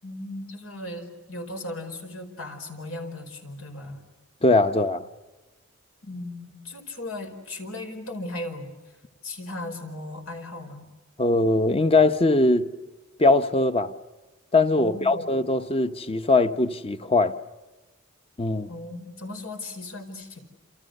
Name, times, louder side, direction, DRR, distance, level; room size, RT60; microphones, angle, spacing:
voice 1, 0.0-4.0 6.0-8.7 9.2-10.9 14.8-15.3 18.7-20.4, left 1 dB, 85° left, 4.9 m, -37 dB
voice 2, 4.4-5.0 11.2-12.7 13.2-13.9 14.5-17.3 18.4-18.7, left 2 dB, 30° left, 1.0 m, -21 dB
28.5 x 27.5 x 6.7 m
head